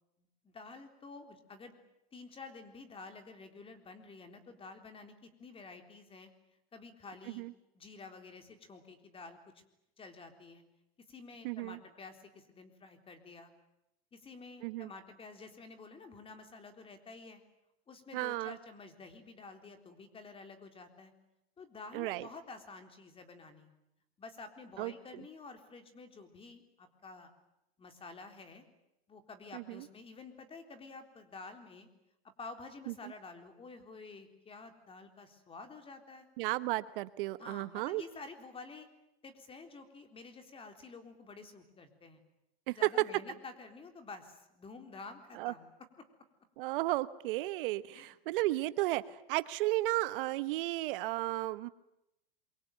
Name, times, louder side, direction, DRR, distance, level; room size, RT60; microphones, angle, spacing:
voice 1, 0.4-1.8 2.1-6.3 6.7-7.4 7.7-9.4 10.0-10.6 11.1-13.5 14.1-17.4 17.9-21.1 21.6-23.7 24.2-27.3 27.8-28.6 29.1-31.9 32.4-36.3 37.4-38.9 39.2-42.2 42.7-45.7 47.9-48.2, left 3 dB, 15° left, 7 dB, 3.8 m, -50 dB
voice 2, 11.4-11.8 14.6-14.9 18.1-18.6 21.9-22.3 24.8-24.9 29.5-29.9 36.4-38.0 42.7-42.8 45.3-45.5 46.6-51.7, right 18 dB, 60° right, 15 dB, 1.1 m, -34 dB
27.0 x 24.0 x 9.2 m, 0.86 s
supercardioid pair, 135°, 31 cm